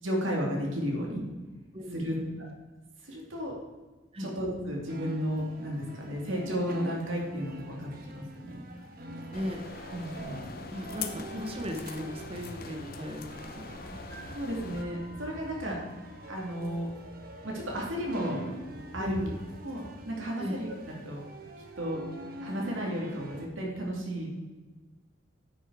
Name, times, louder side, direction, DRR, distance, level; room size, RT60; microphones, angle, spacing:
voice 1, 0.0-1.2 1.9-2.2 3.0-3.5 4.2-8.6 9.9-10.4 14.3-15.8 16.3-16.9 17.4-18.4 18.9-19.2 19.6-21.2 21.8-22.0 22.4-24.3, equal, 85° right, -1 dB, 2.5 m, -33 dB
voice 2, 1.7-2.4 4.1-4.3 9.3-10.2 10.7-14.0 15.6-15.9 19.0-19.4 20.4-20.6, left 1 dB, 30° right, 3 dB, 0.9 m, -38 dB
sound 1, 4.9-23.5, right 1 dB, 50° right, 1.1 m, -45 dB
sound 2, 9.3-14.8, left 5 dB, 45° left, 0.7 m, -43 dB
9.7 x 6.3 x 4.7 m, 1.2 s
head